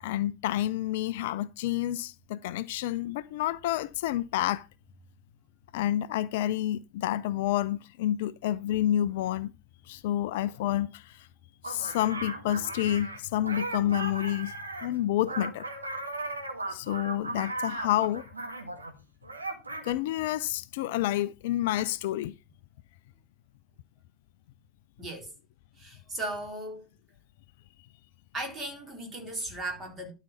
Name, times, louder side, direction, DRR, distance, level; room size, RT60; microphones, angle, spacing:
voice 1, 0.0-4.7 5.7-9.5 9.9-11.3 11.6-14.6 14.8-15.7 16.7-18.3 19.8-22.3, left 13 dB, 50° left, 0.4 m, -29 dB
sound 1, 11.6-18.9 19.2-19.9, right 2 dB, 80° right, 1.9 m, -37 dB
voice 2, 25.0-25.3 25.8-26.9 28.3-30.1, right 1 dB, 20° right, 4.1 m, -37 dB
12.0 x 4.9 x 5.5 m
figure-of-eight pair, 90°, 0 cm